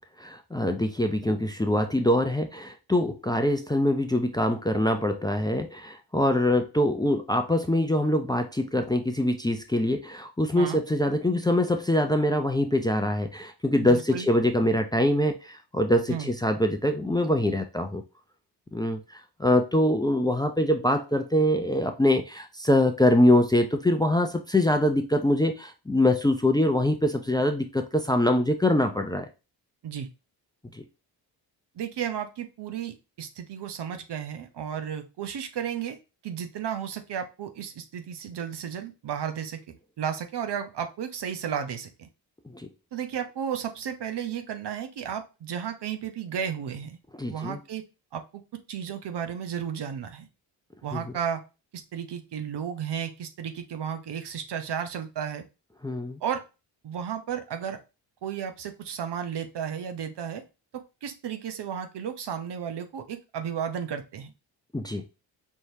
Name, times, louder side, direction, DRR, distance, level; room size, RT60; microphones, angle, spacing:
voice 1, 0.2-18.0 18.7-29.3 30.7-30.8 42.5-42.7 47.2-47.6 50.9-51.0 55.8-56.2 64.7-65.0, left 1 dB, 10° left, 0.5 m, -24 dB
voice 2, 13.8-14.3 16.1-16.3 29.8-30.1 31.8-36.0 36.2-39.6 40.0-42.1 42.9-47.0 47.3-47.8 48.1-48.2 48.5-50.3 50.8-51.4 51.7-55.4 56.2-56.4 56.8-57.8 58.2-60.4 60.7-64.3, right 8 dB, 60° right, 0.9 m, -33 dB
4.6 x 3.1 x 2.7 m
supercardioid pair, 55°, 47 cm